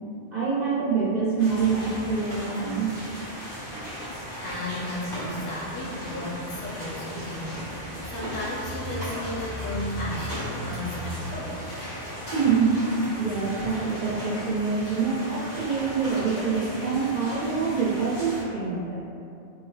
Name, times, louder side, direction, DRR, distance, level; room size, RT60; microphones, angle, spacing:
voice 1, 0.3-2.9 12.3-12.9 13.2-19.0, right 5 dB, 50° right, -7 dB, 0.6 m, -25 dB
sound 1, 1.4-18.4, equal, 50° left, 1.6 m, -36 dB
voice 2, 4.4-11.6, left 1 dB, 85° left, -6 dB, 1.2 m, -34 dB
3.6 x 2.8 x 3.2 m, 2.6 s
omnidirectional pair, 1.2 m